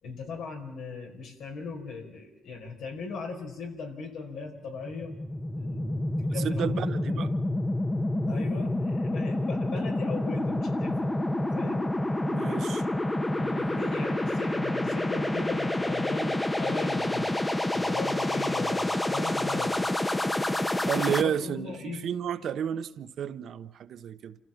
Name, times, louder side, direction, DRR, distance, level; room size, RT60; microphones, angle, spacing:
voice 1, 0.0-5.1 5.5-7.0 8.2-11.1 11.5-11.9 13.4-17.3 17.7-19.8 21.2-22.0, left 4 dB, 80° left, 4.9 m, -38 dB
sound 1, 4.7-21.2, left 1 dB, 15° left, 1.0 m, -28 dB
voice 2, 6.4-7.3 9.3-9.5 12.3-12.9 20.9-24.4, right 8 dB, 65° right, 1.0 m, -32 dB
28.0 x 15.0 x 7.2 m
cardioid pair, 90°, 0 cm